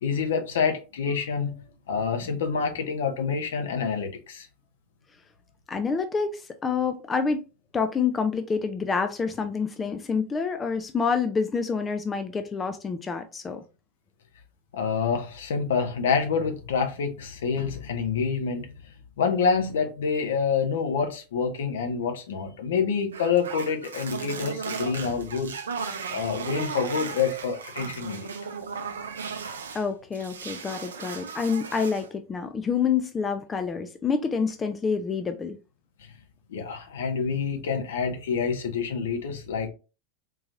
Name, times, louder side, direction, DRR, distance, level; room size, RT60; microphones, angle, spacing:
voice 1, 0.0-4.5 14.7-18.7 19.2-25.5 26.1-28.3 36.5-39.7, left 6 dB, 65° left, 0.7 m, -27 dB
voice 2, 5.7-7.5 7.7-13.6 29.7-35.6, left 5 dB, 20° left, 0.4 m, -27 dB
sound 1, 23.1-29.8 30.1-32.1, right 5 dB, 75° right, 0.4 m, -36 dB
3.8 x 2.8 x 2.5 m
figure-of-eight pair, 85°, 0 cm